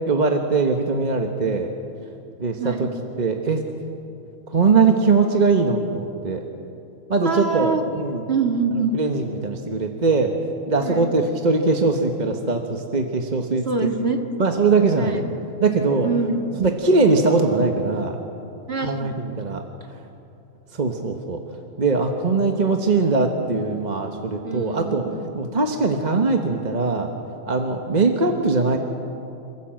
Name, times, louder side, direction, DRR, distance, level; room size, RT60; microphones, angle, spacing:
voice 1, 0.1-1.7 2.4-2.9 3.2-3.6 4.5-6.4 7.1-8.2 8.7-10.3 10.7-13.7 14.4-15.2 15.6-16.1 16.6-18.2 18.8-19.6 20.7-21.4 21.8-25.0 25.3-27.1 27.5-28.8, right 4 dB, 35° right, 4 dB, 1.3 m, -21 dB
voice 2, 2.6-2.9 7.2-7.8 8.3-9.0 10.8-11.1 13.5-14.2 15.0-15.2 16.0-16.7 18.7-19.1 24.4-25.2, right 4 dB, 50° right, 3 dB, 2.1 m, -25 dB
28.0 x 15.0 x 7.7 m, 2.7 s
omnidirectional pair, 1.3 m